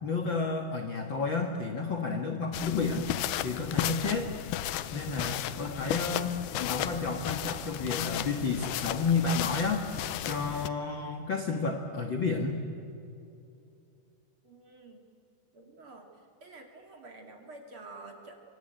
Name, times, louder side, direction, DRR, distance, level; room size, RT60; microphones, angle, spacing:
voice 1, 0.0-3.1 3.4-4.3 4.9-9.9 10.2-12.6, left 4 dB, 55° left, 4 dB, 1.4 m, -31 dB
sound 1, 2.5-10.7, left 12 dB, 75° left, 2.0 m, -34 dB
voice 2, 14.4-15.0 15.5-18.4, right 2 dB, 40° right, 3 dB, 2.7 m, -49 dB
25.0 x 24.5 x 8.9 m, 2.7 s
omnidirectional pair, 4.5 m